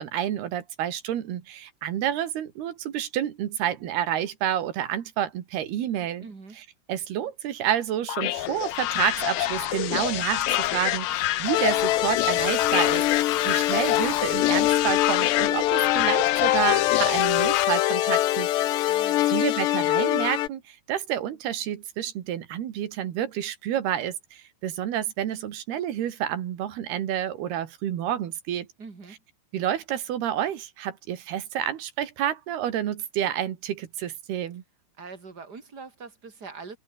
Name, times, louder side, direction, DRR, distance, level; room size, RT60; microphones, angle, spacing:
voice 1, 0.0-6.3 6.9-18.5 18.8-28.7 29.5-34.6, right 11 dB, 70° right, 3.9 m, -29 dB
voice 2, 6.2-6.6 18.9-19.3 28.8-29.2 35.0-36.8, right 4 dB, 25° right, 3.6 m, -43 dB
sound 1, 8.1-17.6, left 15 dB, 70° left, 2.7 m, -27 dB
sound 2, 11.5-20.5, left 15 dB, 85° left, 3.4 m, -24 dB
omnidirectional pair, 4.8 m